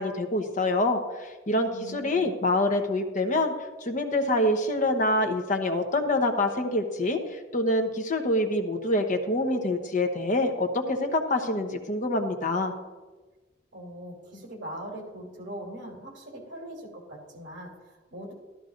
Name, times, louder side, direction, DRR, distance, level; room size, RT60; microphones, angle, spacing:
voice 1, 0.0-3.5 3.8-12.7, left 1 dB, 45° left, 5 dB, 1.0 m, -26 dB
voice 2, 1.7-2.3 13.7-18.3, equal, 70° right, 0 dB, 3.0 m, -41 dB
13.5 x 13.0 x 2.6 m, 1.2 s
head